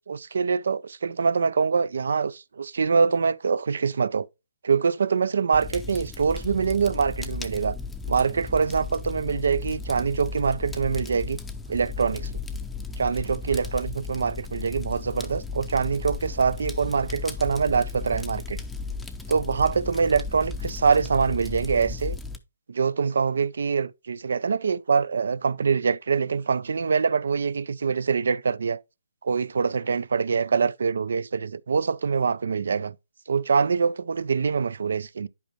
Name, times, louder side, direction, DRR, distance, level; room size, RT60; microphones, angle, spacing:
voice 1, 0.1-4.3 4.6-7.8 8.1-11.4 11.7-12.3 13.0-18.6 19.3-22.2 22.7-28.8 29.2-32.9 33.3-35.3, right 5 dB, 65° right, 0.4 m, -24 dB
Fire, 5.5-22.4, left 4 dB, 5° left, 0.6 m, -35 dB
10.5 x 5.1 x 3.0 m
hypercardioid pair, 155°, 0 cm